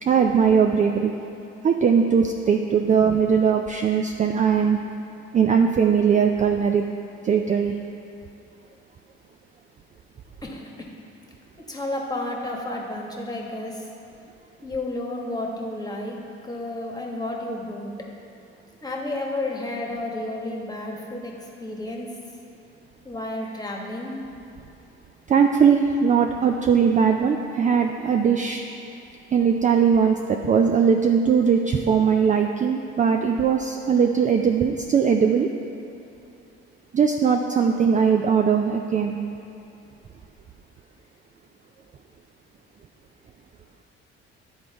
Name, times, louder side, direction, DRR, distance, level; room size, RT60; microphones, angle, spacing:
voice 1, 0.0-1.1 1.6-4.8 5.3-6.8 7.2-7.8 25.3-28.6 29.3-35.5 36.9-39.2, right 6 dB, 25° right, 3 dB, 0.4 m, -20 dB
voice 2, 10.4-10.9 11.7-13.9 14.6-17.9 18.8-21.3 21.6-22.1 23.0-24.2, left 1 dB, 15° left, -1 dB, 1.3 m, -31 dB
10.5 x 3.9 x 3.4 m, 2.8 s
hypercardioid pair, 60°, 30 cm